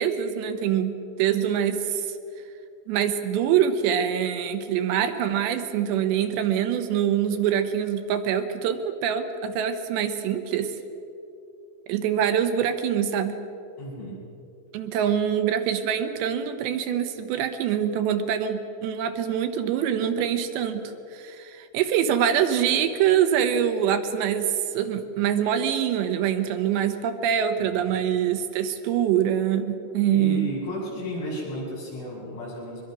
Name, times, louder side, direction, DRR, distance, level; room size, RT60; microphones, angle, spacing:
voice 1, 0.0-2.1 2.9-10.7 11.9-13.4 14.7-20.8 21.1-30.5, right 9 dB, 75° right, 7 dB, 3.1 m, -24 dB
voice 2, 13.8-14.2 27.6-27.9 30.1-32.8, left 1 dB, 75° left, -6 dB, 9.6 m, -33 dB
23.5 x 22.0 x 6.1 m, 2.7 s
omnidirectional pair, 5.3 m